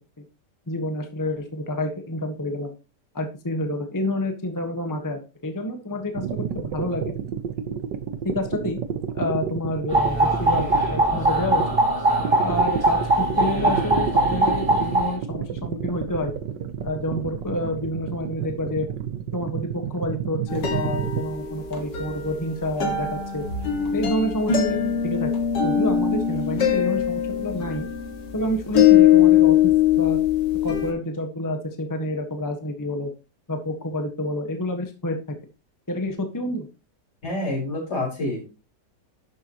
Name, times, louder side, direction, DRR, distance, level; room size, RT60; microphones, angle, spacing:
voice 1, 0.7-2.7 3.1-7.1 8.2-8.8 9.1-11.6 12.4-16.3 16.8-18.9 19.3-23.4 23.9-25.3 25.6-27.9 28.3-30.2 30.6-33.1 33.5-35.2 35.9-36.7, left 1 dB, 10° left, 5 dB, 1.2 m, -28 dB
sound 1, 6.1-11.8 12.2-21.2, right 9 dB, 90° right, 1.6 m, -30 dB
sound 2, 9.9-15.2, right 2 dB, 20° right, 2.9 m, -21 dB
sound 3, 20.5-30.9, left 10 dB, 85° left, 2.5 m, -21 dB
voice 2, 37.2-38.4, left 1 dB, 70° left, -3 dB, 5.6 m, -27 dB
11.5 x 7.2 x 3.0 m, 0.30 s
omnidirectional pair, 1.8 m